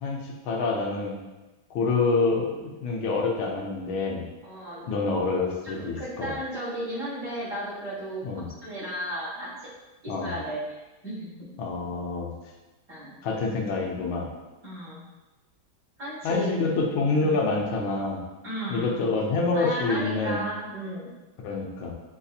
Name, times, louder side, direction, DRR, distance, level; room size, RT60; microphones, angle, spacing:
voice 1, 0.0-1.2 1.7-4.2 4.9-6.3 8.2-8.5 10.1-10.3 11.6-12.3 13.2-14.3 16.2-18.2 18.7-20.4 21.4-21.9, left 3 dB, 85° left, 0 dB, 1.5 m, -27 dB
voice 2, 4.4-4.9 5.6-8.2 8.6-9.7 10.0-11.5 12.9-13.1 14.6-15.0 16.0-16.5 17.2-17.5 18.4-18.9 19.5-21.1, right 1 dB, 45° right, -7 dB, 1.5 m, -34 dB
7.0 x 2.7 x 2.4 m, 1.1 s
omnidirectional pair, 2.2 m